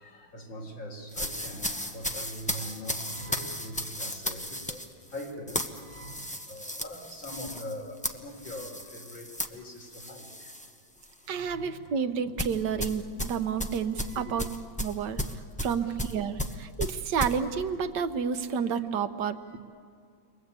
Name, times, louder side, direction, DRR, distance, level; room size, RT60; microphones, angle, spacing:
voice 1, 0.0-4.8 5.1-10.5 11.3-11.8 14.1-14.5 15.6-16.0, equal, 70° left, 4.6 m, -42 dB
sound 1, 1.1-10.7 11.0-11.3 12.4-17.4, left 1 dB, 10° left, 0.4 m, -35 dB
voice 2, 11.3-14.5 14.8-19.6, right 6 dB, 65° right, 1.6 m, -30 dB
29.5 x 23.5 x 8.3 m
omnidirectional pair, 2.1 m